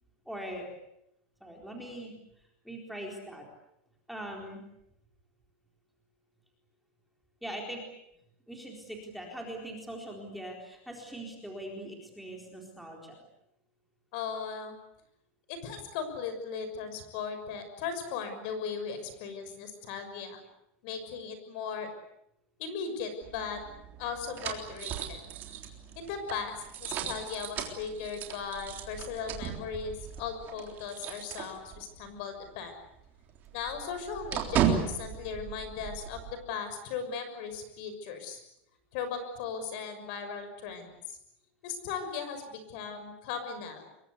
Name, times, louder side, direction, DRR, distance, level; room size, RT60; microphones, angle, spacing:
voice 1, 0.3-0.7 1.4-3.5 4.1-4.6 7.4-7.8 8.5-13.1, right 1 dB, ahead, 0 dB, 4.2 m, -41 dB
voice 2, 14.1-14.7 15.5-20.4 20.8-21.9 22.6-23.6 24.0-25.2 26.0-32.7 33.5-38.4 38.9-41.2 41.6-43.9, left 6 dB, 50° left, 9 dB, 6.4 m, -37 dB
sound 1, 23.2-32.1 32.4-32.5 32.8-36.3, right 8 dB, 30° right, 3.6 m, -36 dB
26.5 x 23.5 x 8.3 m, 0.81 s
supercardioid pair, 175°, 7 cm